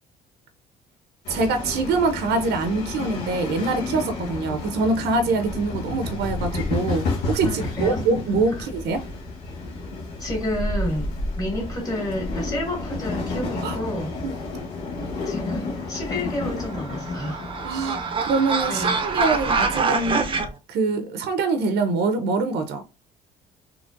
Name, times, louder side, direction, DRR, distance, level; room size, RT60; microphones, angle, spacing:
sound 1, 1.2-20.5, left 3 dB, 80° left, 1.4 m, -31 dB
voice 1, 1.3-9.1 13.6-13.8 14.2-14.3 17.6-20.3 20.7-22.8, right 3 dB, 80° right, 0.6 m, -24 dB
voice 2, 7.4-8.0 8.5-8.7 10.2-11.1 11.3-14.1 15.3-17.5 18.7-19.0, left 1 dB, 20° left, 2.1 m, -30 dB
sound 2, 16.6-20.5, right 4 dB, 30° right, 0.6 m, -25 dB
3.9 x 2.9 x 2.5 m
cardioid pair, 110°, 17 cm